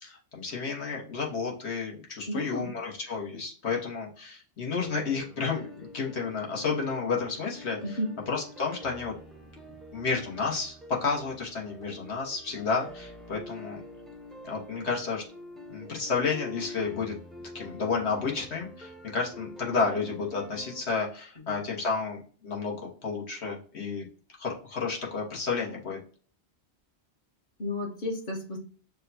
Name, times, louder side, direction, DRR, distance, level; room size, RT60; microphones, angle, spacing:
voice 1, 0.0-8.0 8.3-9.1 9.9-13.8 14.4-15.2 15.7-17.1 17.5-22.8 23.0-24.1 24.4-26.0, left 4 dB, 75° left, -2 dB, 1.4 m, -31 dB
voice 2, 2.3-2.7 7.8-8.1 21.5-21.6 27.6-28.6, left 1 dB, 50° left, 1 dB, 0.8 m, -32 dB
sound 1, 4.8-20.8, left 1 dB, ahead, 0.4 m, -46 dB
6.4 x 2.3 x 2.6 m, 0.42 s
omnidirectional pair, 1.1 m